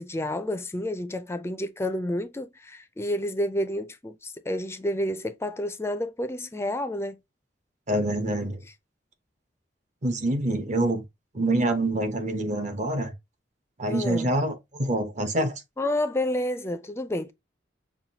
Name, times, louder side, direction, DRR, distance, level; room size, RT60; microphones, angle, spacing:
voice 1, 0.0-7.2 13.9-14.3 15.8-17.3, left 1 dB, 15° left, 0.4 m, -30 dB
voice 2, 7.9-8.6 10.0-11.0 11.3-13.1 13.8-15.5, right 1 dB, 40° right, 0.8 m, -26 dB
5.6 x 2.2 x 2.8 m
head